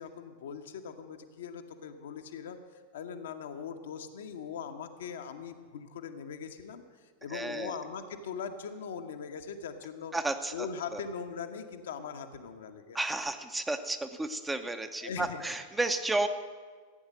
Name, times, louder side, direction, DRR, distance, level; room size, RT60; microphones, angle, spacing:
voice 1, 0.0-2.6 2.9-10.1 10.5-13.0 15.0-15.4, left 6 dB, 60° left, 6 dB, 1.0 m, -40 dB
voice 2, 7.3-7.8 10.1-10.7 10.9-11.0 12.9-16.3, right 2 dB, 10° right, 8 dB, 0.8 m, -32 dB
14.5 x 8.8 x 6.4 m, 1.5 s
figure-of-eight pair, 90°, 0 cm